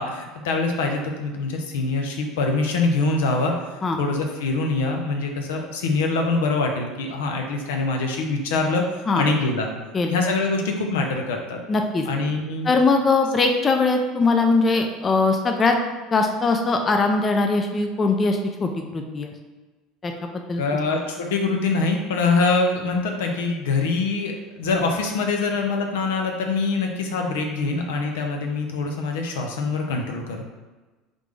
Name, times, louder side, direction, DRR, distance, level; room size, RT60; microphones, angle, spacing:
voice 1, 0.0-8.8 9.2-9.7 10.1-11.6 12.1-12.7 20.6-30.4, left 3 dB, 80° left, 2 dB, 0.6 m, -24 dB
voice 2, 11.7-12.0 12.6-15.8 16.1-19.3 20.0-20.6, left 3 dB, 30° left, 4 dB, 0.5 m, -21 dB
3.8 x 3.4 x 3.2 m, 1.2 s
hypercardioid pair, 75°, 0 cm